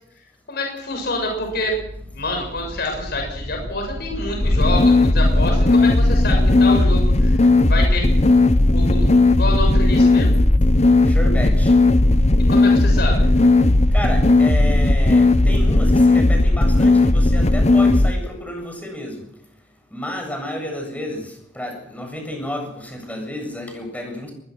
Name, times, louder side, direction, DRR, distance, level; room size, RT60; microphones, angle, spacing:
voice 1, 0.5-1.7 2.1-8.0 8.7-9.1 9.4-10.4 12.5-13.3, left 2 dB, 60° left, 2 dB, 7.0 m, -27 dB
sound 1, 0.9-15.2, equal, 85° right, 4.4 m, -33 dB
sound 2, 4.4-18.1, left 2 dB, 40° left, 1.0 m, -15 dB
voice 2, 11.1-11.7 13.9-19.2 19.9-24.3, left 1 dB, 10° left, 3 dB, 7.7 m, -31 dB
21.5 x 21.0 x 6.4 m, 0.73 s
head